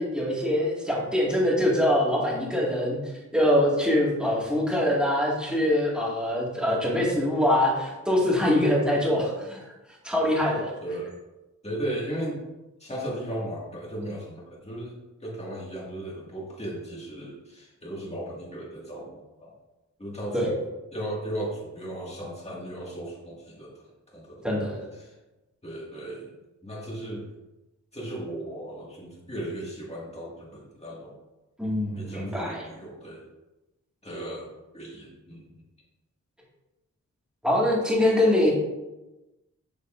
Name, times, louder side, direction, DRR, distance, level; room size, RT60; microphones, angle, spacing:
voice 1, 0.0-3.0 3.3-9.6 10.0-10.7 20.3-20.5 24.4-24.8 31.6-32.6 37.4-38.5, left 1 dB, 5° right, -5 dB, 2.0 m, -23 dB
voice 2, 10.8-11.1 11.6-12.4 12.8-19.5 20.0-20.4 20.9-24.5 25.0-25.1 25.6-26.3 26.6-27.3 27.9-31.2 31.9-33.3 34.0-35.6, right 1 dB, 20° left, -4 dB, 2.0 m, -36 dB
7.2 x 6.5 x 2.6 m, 1.0 s
wide cardioid pair, 110°, 30 cm